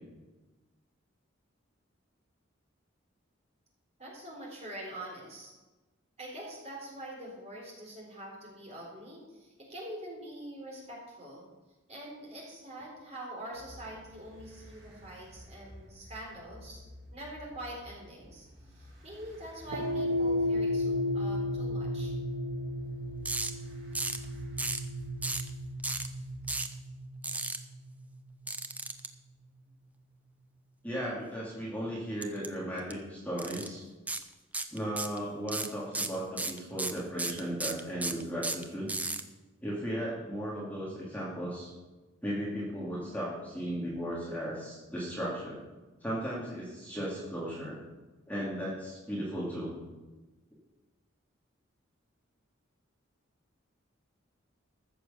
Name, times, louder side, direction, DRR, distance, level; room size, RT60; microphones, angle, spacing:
voice 1, 4.0-5.5 6.2-11.5 11.9-16.8 17.1-18.5 18.7-22.1, right 1 dB, 30° right, -2 dB, 3.8 m, -44 dB
sound 1, 13.5-26.6, left 1 dB, 55° right, 5.1 m, -52 dB
sound 2, 19.7-28.2, left 1 dB, 75° right, 0.9 m, -33 dB
sound 3, 23.2-23.5 23.9-24.2 24.6-24.8 25.2-25.5 25.8-26.1 26.5-26.7 27.2-27.6 28.5-29.1 32.2-32.5 32.8-32.9 33.4-33.7 34.1-34.2 34.5-35.2 35.5-39.2, right 3 dB, 5° right, 0.5 m, -33 dB
voice 2, 30.8-33.8 34.7-39.0 39.6-41.7 42.2-45.6 46.0-47.8 48.3-49.8, equal, 10° left, -6 dB, 2.5 m, -36 dB
14.0 x 6.8 x 6.8 m, 1.2 s
head